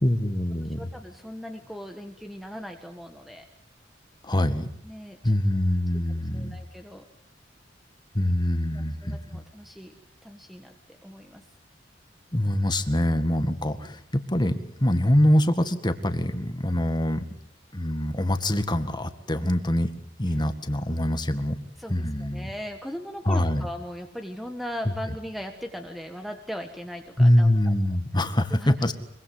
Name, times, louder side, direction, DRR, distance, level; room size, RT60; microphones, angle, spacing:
voice 1, 0.0-0.9 4.2-4.7 5.2-6.6 8.1-9.4 12.3-14.0 14.3-17.2 17.7-19.9 20.2-21.6 21.9-22.5 23.3-23.7 27.2-28.9, left 1 dB, 25° left, 9 dB, 1.9 m, -24 dB
voice 2, 0.6-3.5 4.8-5.4 6.3-7.1 8.2-8.3 8.7-9.9 10.2-11.4 19.3-19.5 20.2-20.4 21.8-27.7 28.6-28.7, equal, ahead, 4 dB, 1.5 m, -39 dB
24.5 x 23.5 x 7.8 m, 0.66 s
head